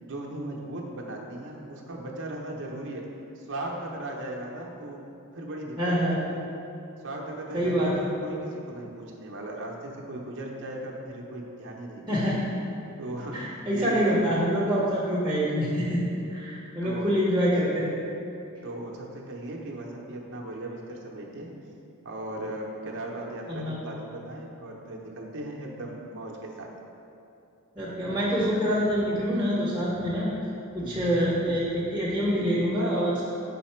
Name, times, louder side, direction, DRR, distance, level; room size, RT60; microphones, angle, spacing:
voice 1, 0.0-3.1 3.4-5.1 5.3-6.4 7.0-12.3 13.0-14.2 16.3-16.4 16.8-17.1 18.6-21.5 22.0-26.7 30.8-31.1, right 1 dB, 55° right, -1 dB, 0.7 m, -37 dB
voice 2, 5.8-6.2 7.5-8.1 12.1-12.5 13.3-16.0 16.3-17.9 23.5-23.8 27.8-30.3 30.7-33.2, equal, 5° right, -7 dB, 0.8 m, -26 dB
5.7 x 4.0 x 4.3 m, 2.7 s
head